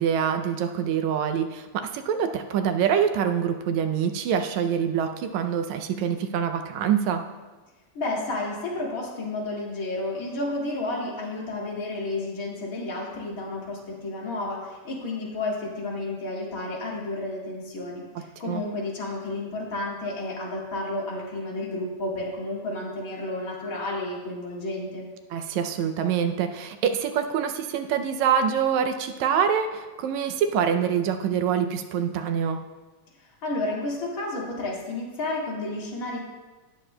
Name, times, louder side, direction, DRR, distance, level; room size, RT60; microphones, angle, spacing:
voice 1, 0.0-7.3 18.2-18.7 25.3-32.6, right 8 dB, 80° right, 7 dB, 1.8 m, -25 dB
voice 2, 7.9-25.1 33.2-36.2, left 2 dB, 30° left, -4 dB, 2.0 m, -31 dB
18.5 x 7.5 x 2.2 m, 1.3 s
omnidirectional pair, 3.3 m